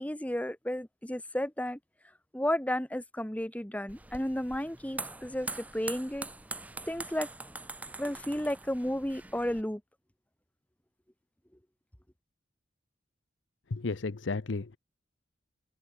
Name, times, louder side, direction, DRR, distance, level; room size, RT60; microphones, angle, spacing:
voice 1, 0.0-1.8 2.3-6.3 6.9-7.3 8.0-9.8, left 1 dB, 5° left, 1.3 m, -33 dB
sound 1, 3.9-9.6, right 3 dB, 10° right, 0.6 m, -43 dB
voice 2, 13.7-14.8, left 3 dB, 75° left, 0.7 m, -33 dB
head